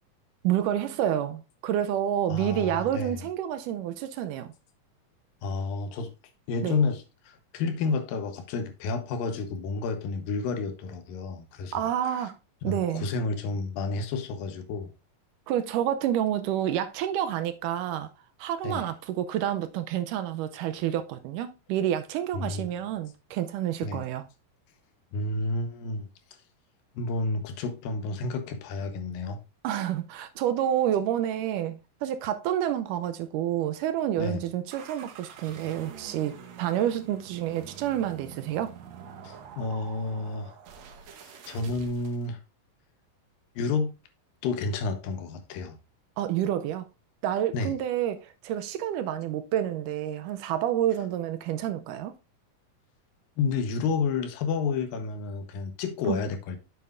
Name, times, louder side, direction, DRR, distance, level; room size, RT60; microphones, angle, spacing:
voice 1, 0.4-4.5 6.6-6.8 11.7-12.4 12.6-13.1 15.5-18.1 18.4-24.3 29.6-38.7 46.2-46.9 47.2-52.1 56.1-56.2, right 11 dB, 80° right, 2.0 m, -29 dB
voice 2, 2.3-3.1 5.4-6.1 6.5-7.0 7.5-11.8 12.6-14.9 18.6-18.9 22.3-22.7 23.8-24.0 25.1-26.1 27.0-29.4 34.2-34.4 39.2-40.5 41.2-42.4 43.6-43.9 44.4-45.8 47.5-47.8 53.4-56.6, left 4 dB, 85° left, 2.7 m, -30 dB
sound 1, 34.7-42.3, right 7 dB, 65° right, 2.0 m, -46 dB
8.0 x 7.4 x 2.5 m
omnidirectional pair, 3.9 m